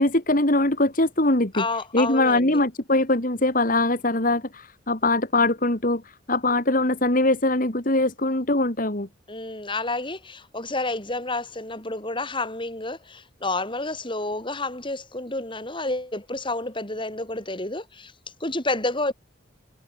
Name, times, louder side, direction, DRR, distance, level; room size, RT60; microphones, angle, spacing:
voice 1, 0.0-1.6 1.9-6.0 6.3-9.1, left 2 dB, 45° left, 2.9 m, -22 dB
voice 2, 1.5-2.6 9.3-18.1 18.4-19.1, left 2 dB, 25° left, 7.3 m, -30 dB
head